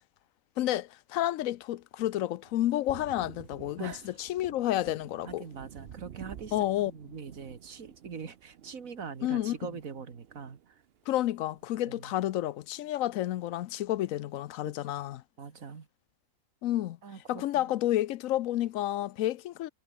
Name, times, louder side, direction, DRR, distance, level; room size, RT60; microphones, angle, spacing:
voice 1, 0.6-5.4 6.5-6.9 9.2-9.6 11.1-15.2 16.6-17.0 17.3-19.7, left 14 dB, 85° left, 1.0 m, -30 dB
Thunder, 2.4-12.2 12.5-13.6, right 9 dB, 55° right, 0.9 m, -51 dB
voice 2, 3.8-4.2 5.2-10.8 11.9-12.1 15.4-15.9 17.0-17.7, right 6 dB, 90° right, 2.2 m, -43 dB
omnidirectional pair, 1.4 m